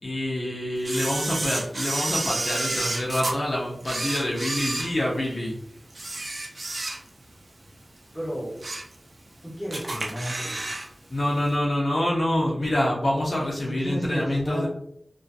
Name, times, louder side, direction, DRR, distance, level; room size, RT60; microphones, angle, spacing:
voice 1, 0.0-5.6 11.1-14.7, left 1 dB, 60° left, -3 dB, 0.5 m, -26 dB
Camera, 0.8-3.3 3.8-5.5 5.9-7.3 7.7-7.8 8.3-8.9 9.3-9.4 9.7-10.9 11.1-11.2, right 2 dB, 55° right, 0.4 m, -30 dB
voice 2, 8.1-8.5 9.4-10.6 13.8-14.7, equal, 5° left, -5 dB, 1.2 m, -31 dB
2.5 x 2.4 x 2.3 m, 0.72 s
wide cardioid pair, 60°, 0 cm